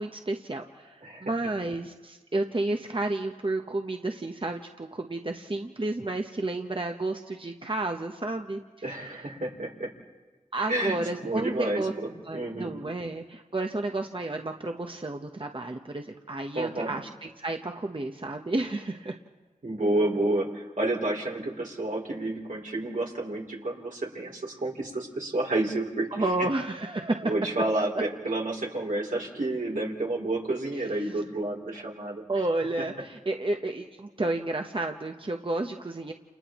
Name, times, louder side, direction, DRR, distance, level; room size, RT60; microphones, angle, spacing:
voice 1, 0.0-8.6 10.5-19.2 26.1-27.3 32.3-36.1, right 2 dB, 40° right, 3 dB, 1.0 m, -31 dB
voice 2, 8.8-9.9 10.7-11.9 12.3-12.7 16.5-17.0 19.6-26.5 27.2-32.2, right 2 dB, 90° right, -1 dB, 3.3 m, -30 dB
29.5 x 29.0 x 3.1 m, 1.2 s
wide cardioid pair, 55°, 13 cm